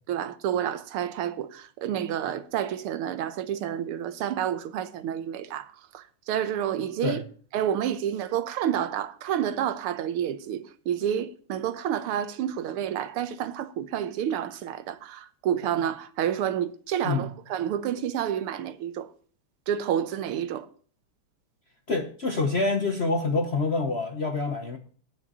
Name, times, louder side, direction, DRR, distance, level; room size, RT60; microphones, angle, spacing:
voice 1, 0.1-7.2 7.5-19.1 19.7-20.7, right 10 dB, 90° right, 1.8 m, -29 dB
voice 2, 21.9-24.8, left 3 dB, 50° left, 0.8 m, -26 dB
9.8 x 5.9 x 8.1 m
omnidirectional pair, 2.4 m